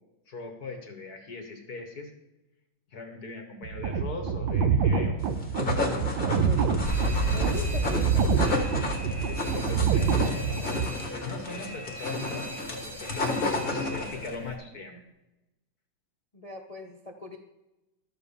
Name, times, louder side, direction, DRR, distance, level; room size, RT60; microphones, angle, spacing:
voice 1, 0.3-2.1 2.9-5.2 9.3-15.0, left 3 dB, 50° left, 4 dB, 1.6 m, -40 dB
sound 1, 3.6-10.9, right 6 dB, 75° right, 1.5 m, -26 dB
sound 2, 5.3-14.3, left 3 dB, 30° left, 1.5 m, -32 dB
voice 2, 6.2-6.9 7.3-8.3 16.3-17.4, left 2 dB, 75° left, 3 dB, 0.3 m, -40 dB
Alarm, 6.8-14.5, right 2 dB, 10° right, 1.7 m, -33 dB
12.5 x 4.6 x 7.0 m, 1.0 s
omnidirectional pair, 2.2 m